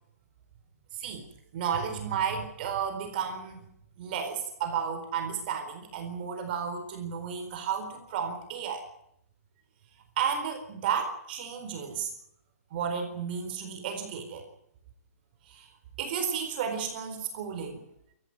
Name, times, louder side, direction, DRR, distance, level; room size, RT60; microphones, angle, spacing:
voice 1, 0.9-1.2 1.5-3.6 4.0-8.8 10.2-12.1 12.7-14.4 15.4-15.7 16.0-17.8, right 7 dB, 35° right, 5 dB, 4.2 m, -32 dB
24.5 x 15.0 x 9.6 m, 0.77 s
hypercardioid pair, 160°, 9 cm